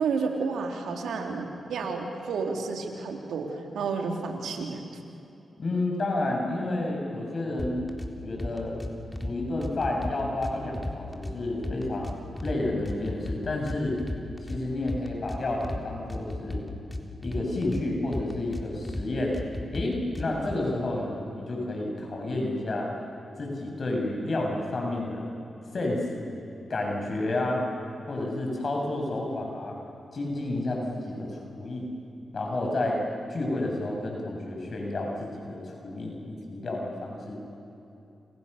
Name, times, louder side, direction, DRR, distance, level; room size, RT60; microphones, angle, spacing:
voice 1, 0.0-4.8, right 4 dB, 85° right, 2 dB, 3.4 m, -31 dB
voice 2, 5.6-7.8 8.2-8.8 9.2-12.2 12.4-14.0 14.4-16.7 17.2-19.4 19.7-22.9 23.4-25.3 25.7-26.3 26.7-27.6 28.1-29.8 30.1-31.9 32.3-33.0 33.3-37.4, left 2 dB, 55° left, 1 dB, 7.2 m, -30 dB
sound 1, 7.6-8.1 8.4-9.3 9.6-11.3 11.6-12.6 12.9-14.6 14.9-15.8 16.1-17.8 18.1-19.0 19.3-20.6, left 1 dB, 10° left, 3.8 m, -34 dB
29.5 x 28.0 x 6.9 m, 2.9 s
cardioid pair, 50°, 0 cm